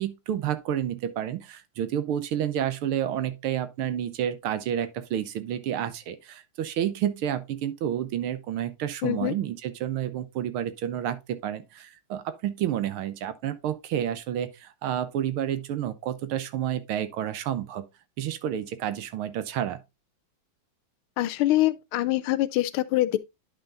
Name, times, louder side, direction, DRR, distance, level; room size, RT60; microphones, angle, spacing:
voice 1, 0.0-17.8 18.2-19.8, right 10 dB, 90° right, 1.8 m, -30 dB
voice 2, 9.0-9.3 21.2-23.2, left 16 dB, 90° left, 1.5 m, -24 dB
10.5 x 5.6 x 2.5 m
omnidirectional pair, 2.3 m